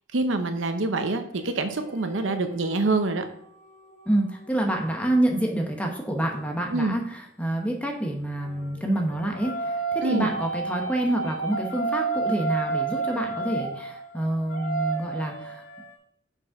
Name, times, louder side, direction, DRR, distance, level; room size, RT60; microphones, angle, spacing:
voice 1, 0.1-3.2 6.7-7.0 10.0-10.3, right 3 dB, 85° right, 7 dB, 0.8 m, -25 dB
sound 1, 1.3-6.5 8.4-15.9, right 4 dB, 90° left, 2.5 m, -33 dB
voice 2, 4.1-15.6, right 1 dB, 5° left, 1 dB, 0.9 m, -27 dB
6.2 x 5.4 x 4.7 m, 0.67 s
head